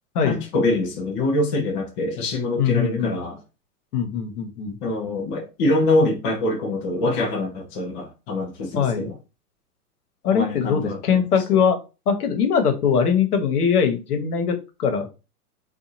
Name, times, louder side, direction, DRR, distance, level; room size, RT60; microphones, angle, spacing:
voice 1, 0.2-3.4 4.8-9.2 10.3-11.2, left 2 dB, 15° left, 0.3 m, -24 dB
voice 2, 2.6-3.2 3.9-4.8 8.7-9.1 10.2-11.8 12.1-15.1, left 7 dB, 75° left, 1.0 m, -21 dB
2.8 x 2.4 x 2.6 m
hypercardioid pair, 110°, 46 cm